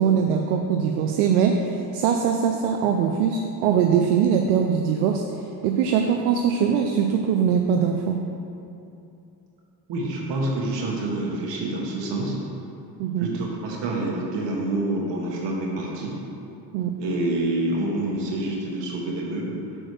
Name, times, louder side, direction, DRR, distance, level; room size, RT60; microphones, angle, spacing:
voice 1, 0.0-8.2 13.0-13.3 16.7-16.9, right 7 dB, 80° right, 3 dB, 0.6 m, -22 dB
voice 2, 9.9-12.4 13.2-16.2 17.0-19.6, right 2 dB, 60° right, -2 dB, 1.8 m, -27 dB
6.3 x 4.4 x 6.3 m, 2.7 s
supercardioid pair, 80°, 47 cm